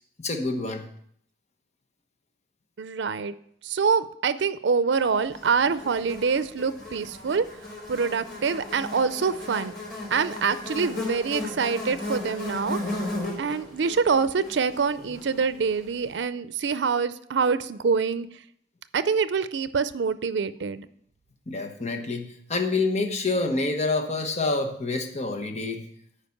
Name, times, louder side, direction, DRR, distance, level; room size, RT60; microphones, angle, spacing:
voice 1, 0.2-0.8 21.5-25.8, left 3 dB, 40° left, 5 dB, 1.1 m, -27 dB
voice 2, 2.8-3.3 3.6-7.5 7.9-9.7 10.1-12.8 13.4-18.3 18.9-20.9, right 5 dB, 85° right, 14 dB, 0.5 m, -25 dB
Buzz, 5.3-15.8, left 2 dB, 65° left, 3.6 m, -36 dB
9.7 x 5.1 x 7.1 m, 0.68 s
head